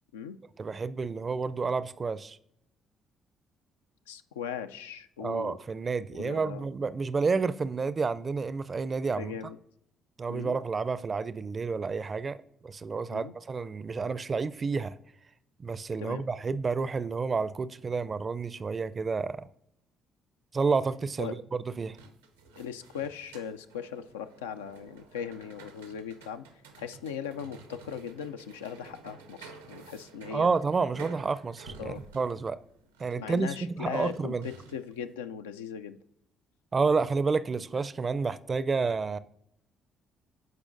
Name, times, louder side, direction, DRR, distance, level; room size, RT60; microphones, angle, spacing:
voice 1, 0.6-2.4 5.2-9.3 10.2-12.4 12.6-14.9 15.6-19.5 20.5-22.0 30.3-32.6 33.0-34.5 36.7-39.2, right 4 dB, 40° right, 0.4 m, -30 dB
voice 2, 4.1-5.6 6.1-6.7 9.1-9.6 10.3-10.6 13.1-13.3 16.0-16.2 21.2-21.3 22.6-26.5 26.8-30.5 31.8-32.0 33.1-36.0, left 8 dB, 85° left, 0.3 m, -39 dB
sound 1, 21.8-35.0, right 4 dB, 90° right, 0.7 m, -51 dB
15.0 x 4.9 x 2.6 m
hypercardioid pair, 45°, 0 cm